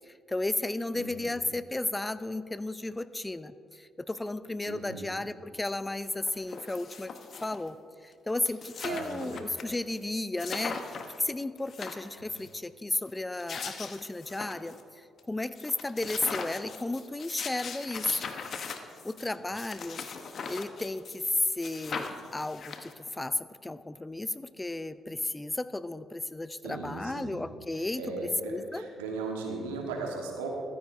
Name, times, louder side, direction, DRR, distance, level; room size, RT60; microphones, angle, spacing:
voice 1, 0.1-7.1 7.4-7.8 8.0-18.3 19.0-20.1 20.5-28.8, left 2 dB, 20° left, 14 dB, 0.4 m, -34 dB
voice 2, 0.9-1.4 4.6-5.1 8.8-9.4 12.2-12.3 26.6-27.4 27.7-30.5, right 3 dB, 85° right, 1 dB, 1.3 m, -37 dB
sound 1, 5.6-5.7 6.0-7.7 8.1-8.2 8.4-9.6 10.0-10.1 10.4-11.2 11.6-12.5 13.2-14.8 15.2-15.3 15.6-21.3 21.6-23.1, left 5 dB, 55° left, 0.9 m, -40 dB
14.0 x 13.5 x 2.6 m, 2.3 s
hypercardioid pair, 45°, 0 cm